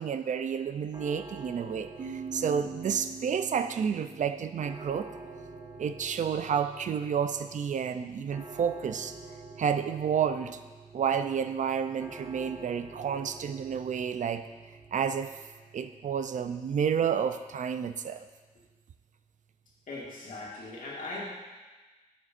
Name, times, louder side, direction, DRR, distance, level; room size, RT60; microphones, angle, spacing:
voice 1, 0.0-5.1 5.8-9.2 9.6-10.6 10.9-14.4 14.9-15.3 15.7-18.2, right 7 dB, 60° right, 10 dB, 0.4 m, -30 dB
sound 1, 0.9-19.8, right 3 dB, 35° right, 1.4 m, -49 dB
sound 2, 2.0-5.6, right 5 dB, 80° right, 1.1 m, -43 dB
voice 2, 19.9-21.2, left 2 dB, 75° left, -5 dB, 2.1 m, -39 dB
9.5 x 7.5 x 2.6 m, 1.2 s
cardioid pair, 80°, 14 cm